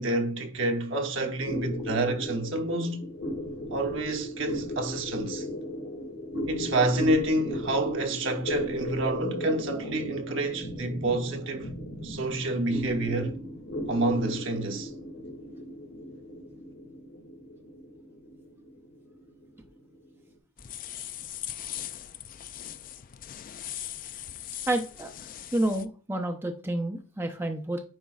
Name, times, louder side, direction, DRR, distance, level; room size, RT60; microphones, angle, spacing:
voice 1, 0.0-3.1 3.7-5.5 6.5-11.7 12.0-13.4 13.9-14.9, right 2 dB, 60° right, 1.0 m, -28 dB
sound 1, 1.4-20.2, equal, 80° left, 2.1 m, -37 dB
sound 2, 20.6-25.8, left 11 dB, 40° left, 0.3 m, -40 dB
voice 2, 24.7-25.1 25.5-27.8, right 1 dB, 10° right, 0.6 m, -29 dB
9.2 x 5.2 x 2.4 m
head